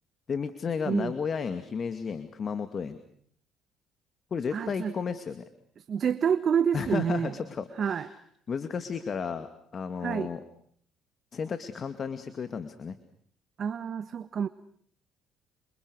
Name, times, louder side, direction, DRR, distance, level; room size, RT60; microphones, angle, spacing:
voice 1, 0.3-3.0 4.3-5.4 6.7-8.2 8.5-10.4 11.3-13.0, left 6 dB, 45° left, 10 dB, 2.2 m, -33 dB
voice 2, 4.5-4.9 5.8-7.3 7.8-8.1 10.0-10.3 13.6-14.5, right 7 dB, 50° right, 12 dB, 1.3 m, -28 dB
28.5 x 26.5 x 6.5 m, 0.62 s
supercardioid pair, 75°, 0 cm